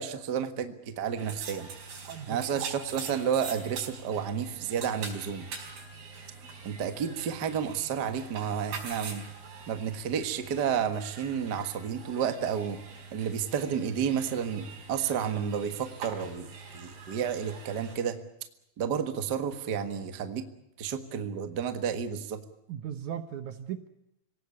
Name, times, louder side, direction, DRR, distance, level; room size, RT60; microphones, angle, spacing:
voice 1, 0.0-1.7 2.3-5.4 6.6-9.3 9.7-12.8 13.1-18.2 18.8-20.4 20.8-22.4, right 7 dB, 50° right, 8 dB, 1.2 m, -31 dB
sound 1, 1.2-18.0, right 5 dB, 90° right, 6.4 m, -44 dB
voice 2, 2.1-2.6 22.7-23.9, right 9 dB, 65° right, 10 dB, 2.1 m, -38 dB
26.5 x 17.5 x 8.4 m, 0.86 s
omnidirectional pair, 4.3 m